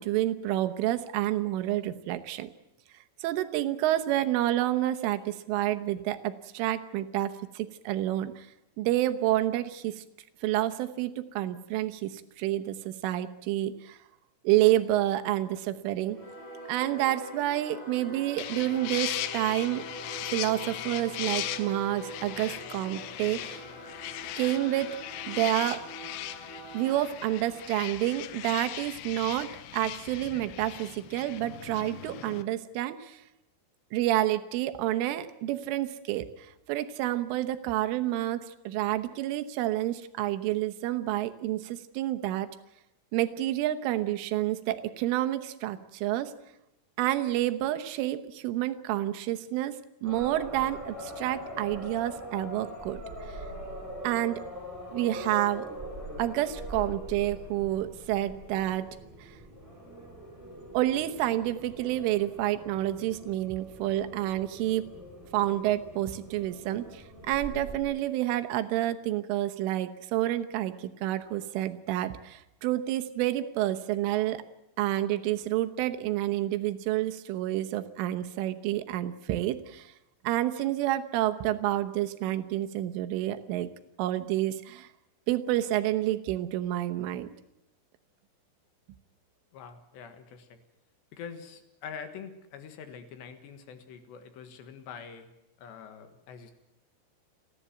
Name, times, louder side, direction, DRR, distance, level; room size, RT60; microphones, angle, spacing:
voice 1, 0.0-2.5 3.2-8.5 8.8-10.1 10.4-14.0 14.5-16.2 16.7-19.9 20.3-23.6 24.4-25.0 25.3-25.8 26.7-33.2 33.9-42.5 43.1-46.3 47.0-53.0 53.3-53.4 54.0-54.4 54.9-55.7 56.2-58.9 59.2-59.4 60.7-64.9 65.3-74.4 74.8-79.9 80.3-83.7 84.0-84.9 85.3-87.3, right 14 dB, 80° right, 9 dB, 3.5 m, -29 dB
Singing / Musical instrument, 16.1-29.0, equal, 25° left, 6.3 m, -44 dB
sound 1, 18.4-32.4, left 14 dB, 85° left, 3.5 m, -38 dB
sound 2, 50.0-67.8, equal, 5° right, 7.0 m, -42 dB
voice 2, 89.5-90.6 91.1-95.3 95.6-96.5, left 6 dB, 70° left, 8 dB, 3.5 m, -45 dB
30.0 x 11.5 x 9.2 m, 0.86 s
omnidirectional pair, 5.7 m